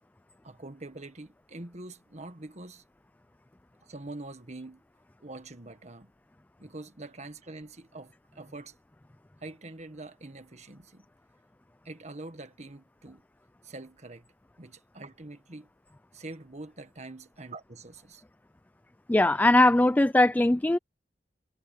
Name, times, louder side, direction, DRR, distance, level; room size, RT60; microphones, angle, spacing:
voice 1, 0.4-2.8 3.8-4.8 5.2-6.1 6.6-8.8 9.4-11.0 11.8-13.2 13.6-14.3 14.6-15.7 16.1-18.2, right 2 dB, 40° right, 1.6 m, -44 dB
voice 2, 19.1-20.8, left 1 dB, 10° left, 0.3 m, -20 dB
head